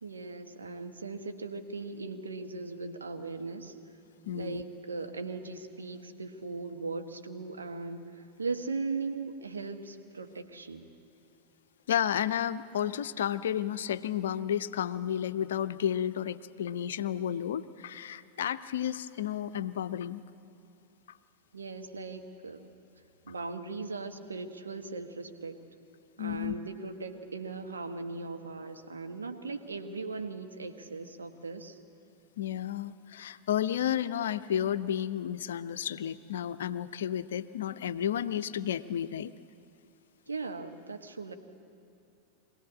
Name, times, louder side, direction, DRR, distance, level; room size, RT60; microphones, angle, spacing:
voice 1, 0.0-3.7 4.3-10.9 21.5-22.6 23.2-25.6 26.2-31.8 40.3-41.3, right 4 dB, 75° right, 6 dB, 1.2 m, -38 dB
voice 2, 4.3-4.6 11.9-20.2 26.2-26.5 32.4-39.3, left 10 dB, 60° left, 14 dB, 0.6 m, -32 dB
23.5 x 16.5 x 8.5 m, 2.6 s
figure-of-eight pair, 90°, 0 cm